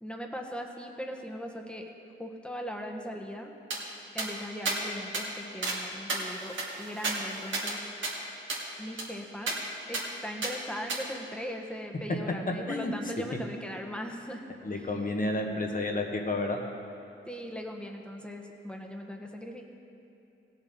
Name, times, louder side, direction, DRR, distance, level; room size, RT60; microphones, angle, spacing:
voice 1, 0.0-1.9 2.2-3.5 4.1-7.9 8.8-9.6 9.9-14.4 14.7-14.9 17.3-19.7, equal, 5° left, 2 dB, 1.4 m, -39 dB
sound 1, 3.7-3.8 4.2-4.3 4.7-4.8 5.1-5.3 5.6-5.8 6.1-7.8 8.0-8.1 8.5-8.6 9.0-9.1 9.5-9.6 9.9-10.1 10.4-10.5 10.9-11.0, right 3 dB, 65° right, 2.3 m, -32 dB
voice 2, 14.6-16.6, left 2 dB, 40° left, 2 dB, 1.5 m, -30 dB
17.0 x 7.0 x 4.4 m, 2.7 s
cardioid pair, 60°, 21 cm